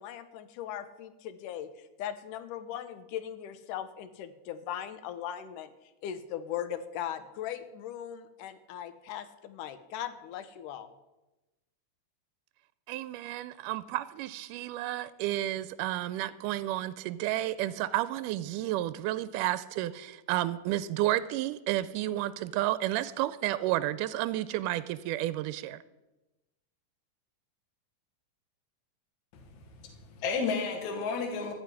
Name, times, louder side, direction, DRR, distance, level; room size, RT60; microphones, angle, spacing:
voice 1, 0.0-1.7 2.0-5.7 6.0-10.9, left 10 dB, 85° left, 12 dB, 2.4 m, -39 dB
voice 2, 12.9-25.8, right 14 dB, 90° right, 16 dB, 2.1 m, -31 dB
voice 3, 29.3-31.5, left 5 dB, 70° left, 2 dB, 2.8 m, -33 dB
14.0 x 5.8 x 9.7 m, 1.0 s
omnidirectional pair, 3.6 m